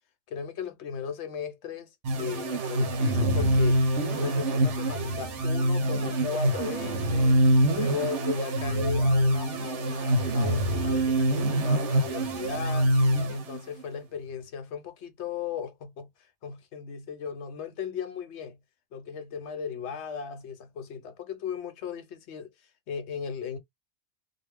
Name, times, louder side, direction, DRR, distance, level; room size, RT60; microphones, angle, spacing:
voice 1, 0.3-7.4 7.7-12.9 13.3-16.1 16.4-18.6 18.9-22.5 22.9-23.6, left 6 dB, 75° left, 0.9 m, -36 dB
sound 1, 2.0-13.8, right 1 dB, 85° right, 1.1 m, -25 dB
2.5 x 2.1 x 3.3 m
omnidirectional pair, 1.2 m